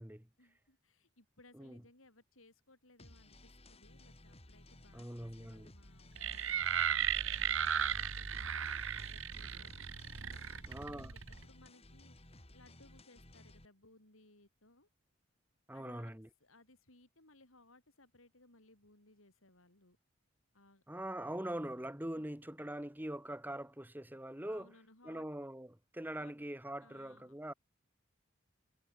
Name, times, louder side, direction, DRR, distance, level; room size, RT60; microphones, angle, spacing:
voice 1, 0.4-6.8 7.1-9.8 10.3-14.9 15.7-16.1 16.4-20.0 20.5-20.8 24.5-25.3 26.2-26.3 26.8-27.6, left 2 dB, 85° left, 7.2 m, -64 dB
sound 1, 3.0-13.7, left 1 dB, 30° left, 4.1 m, -58 dB
voice 2, 4.9-5.7 10.7-11.1 15.7-16.3 20.9-24.7 25.0-27.5, right 1 dB, 10° right, 1.4 m, -43 dB
sound 2, 6.2-11.4, right 8 dB, 75° right, 1.4 m, -36 dB
head